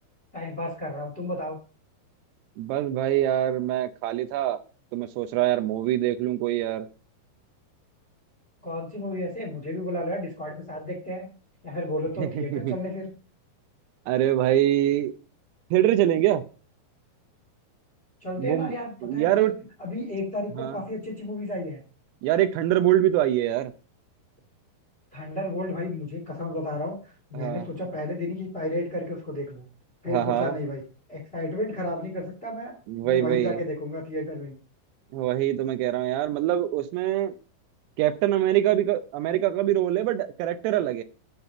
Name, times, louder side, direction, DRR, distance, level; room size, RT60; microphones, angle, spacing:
voice 1, 0.3-1.6 8.6-11.3 11.6-13.1 18.2-19.5 19.8-21.8 25.1-27.0 27.3-29.6 30.0-30.8 31.1-32.7 33.0-34.5, left 1 dB, 20° left, 1.7 m, -32 dB
voice 2, 2.6-4.6 4.9-6.9 12.2-12.7 14.1-15.1 15.7-16.4 18.4-18.7 19.0-19.5 20.6-20.8 22.2-23.7 27.3-27.7 30.1-30.5 32.9-33.6 35.1-37.4 38.0-41.0, right 13 dB, 85° right, 2.8 m, -24 dB
8.7 x 4.1 x 6.7 m
omnidirectional pair, 4.8 m